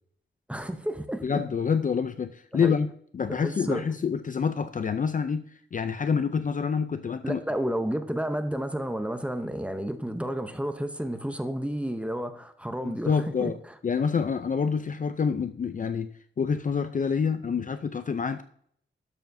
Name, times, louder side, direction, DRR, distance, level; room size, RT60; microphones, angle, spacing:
voice 1, 0.5-1.4 2.6-2.7 3.3-3.8 7.2-13.5, equal, 5° right, 8 dB, 0.6 m, -31 dB
voice 2, 1.2-7.4 12.8-13.6 13.8-18.4, left 6 dB, 40° left, 10 dB, 0.4 m, -27 dB
12.0 x 7.0 x 2.6 m, 0.63 s
wide cardioid pair, 150°, 21 cm